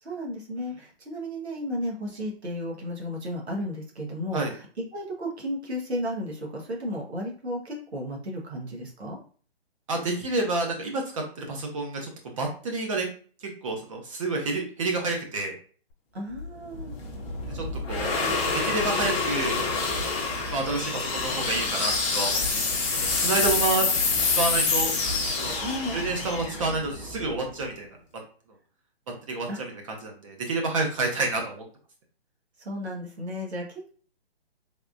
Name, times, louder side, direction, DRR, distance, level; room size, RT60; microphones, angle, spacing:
voice 1, 0.0-4.7 4.9-9.2 16.1-16.9 25.6-26.0 29.5-29.6 32.6-33.9, equal, 90° right, -1 dB, 1.2 m, -34 dB
voice 2, 9.9-12.1 12.4-13.1 13.4-15.5 17.5-18.2 18.5-19.6 20.5-22.6 22.9-23.9 24.3-24.9 25.4-25.5 25.9-27.9 29.3-29.7 30.0-31.6, right 3 dB, 30° right, 1 dB, 0.5 m, -29 dB
sound 1, 16.4-27.6, left 4 dB, 30° left, 0.7 m, -27 dB
3.4 x 2.3 x 2.5 m, 0.42 s
hypercardioid pair, 140°, 32 cm